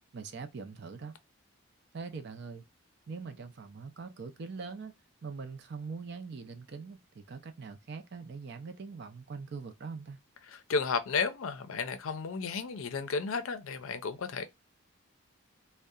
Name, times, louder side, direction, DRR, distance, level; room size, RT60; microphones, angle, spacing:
voice 1, 0.1-1.1 1.9-2.6 3.1-4.9 5.2-10.2, right 4 dB, 50° right, 0.5 m, -42 dB
voice 2, 10.5-14.5, left 5 dB, 75° left, 0.5 m, -33 dB
2.7 x 2.1 x 2.3 m
head